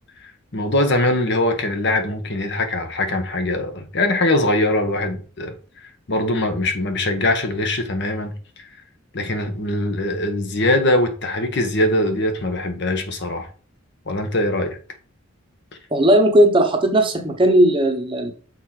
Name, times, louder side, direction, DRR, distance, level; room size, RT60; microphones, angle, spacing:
voice 1, 0.2-8.7 9.1-13.5 14.1-14.8, left 1 dB, 55° left, 1.3 m, -22 dB
voice 2, 15.9-18.3, right 1 dB, 25° right, 0.9 m, -16 dB
6.6 x 4.4 x 4.8 m
head